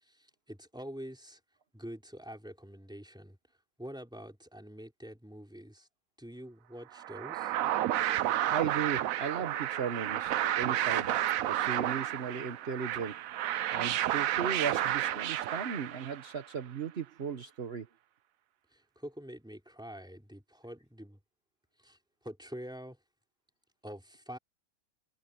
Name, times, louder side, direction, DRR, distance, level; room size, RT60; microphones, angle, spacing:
voice 1, 0.0-1.4 1.7-3.4 3.8-5.9 6.2-7.5 18.7-21.2 21.8-22.0 22.2-23.0 23.8-24.4, equal, 5° right, 3.7 m, -46 dB
sound 1, 7.0-16.4, right 12 dB, 85° right, 1.1 m, -31 dB
voice 2, 8.4-13.2 13.7-17.9, right 6 dB, 50° right, 1.3 m, -36 dB
omnidirectional pair, 1.4 m